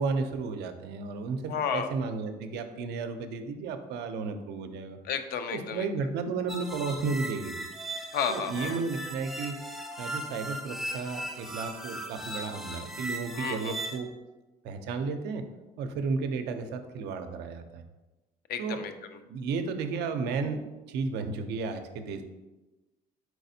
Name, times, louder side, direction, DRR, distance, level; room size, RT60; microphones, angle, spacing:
voice 1, 0.0-5.0 5.5-7.5 8.3-14.1 14.6-15.4 15.8-17.8 18.6-18.8 19.3-20.6 20.9-22.2, right 4 dB, 80° right, 7 dB, 0.5 m, -33 dB
voice 2, 1.5-1.9 5.0-5.9 8.1-8.8 13.3-13.8 18.5-19.2, left 7 dB, 65° left, 8 dB, 0.4 m, -32 dB
sound 1, 6.5-14.0, right 1 dB, ahead, 0.5 m, -38 dB
4.6 x 4.1 x 2.7 m, 1.1 s
cardioid pair, 110°, 17 cm